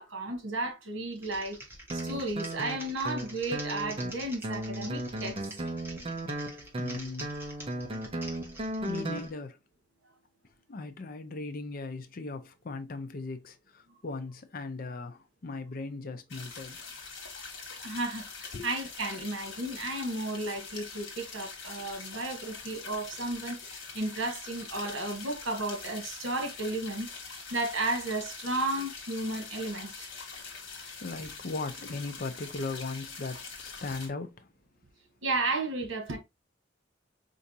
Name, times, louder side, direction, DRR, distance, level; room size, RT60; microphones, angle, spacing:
voice 1, 0.0-1.6 1.9-5.4 17.8-27.1 27.5-30.1 35.2-36.2, right 2 dB, 80° right, 1.2 m, -33 dB
Typing, 1.1-9.3, right 1 dB, 10° right, 1.0 m, -47 dB
Guitar, 1.9-9.3, right 1 dB, 30° right, 0.5 m, -36 dB
voice 2, 6.8-7.3 7.7-7.9 8.9-9.6 10.7-16.8 18.5-18.7 30.4-34.5, left 3 dB, 45° left, 0.5 m, -38 dB
sound 1, 16.3-34.1, left 5 dB, 70° left, 1.3 m, -44 dB
4.5 x 2.6 x 2.7 m
head